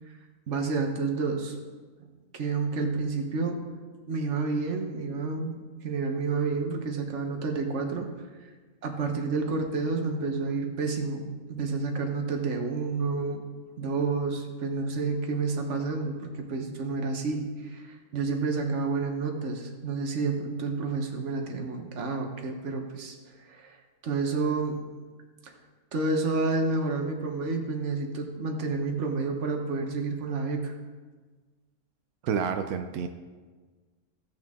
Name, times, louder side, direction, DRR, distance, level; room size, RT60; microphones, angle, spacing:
voice 1, 0.5-1.6 2.3-3.6 4.1-5.5 5.8-8.3 8.8-13.4 13.8-23.2 23.4-23.8 24.0-24.8 25.4-25.5 25.9-30.7, right 4 dB, 55° right, 3 dB, 1.4 m, -29 dB
voice 2, 32.2-33.1, right 7 dB, 90° right, 6 dB, 1.2 m, -29 dB
15.5 x 6.5 x 3.6 m, 1.4 s
omnidirectional pair, 1.5 m